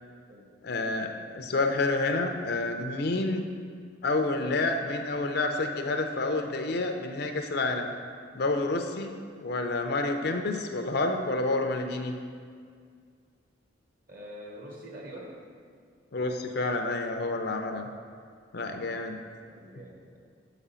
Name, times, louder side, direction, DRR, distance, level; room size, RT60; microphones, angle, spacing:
voice 1, 0.6-3.4 4.0-7.9 8.3-9.1 9.4-12.1 16.1-17.9 18.5-19.2, left 2 dB, 55° left, 5 dB, 0.5 m, -29 dB
voice 2, 14.1-15.3 18.7-19.0 19.5-20.2, equal, 45° right, -2 dB, 1.3 m, -45 dB
6.5 x 5.0 x 5.6 m, 2.1 s
head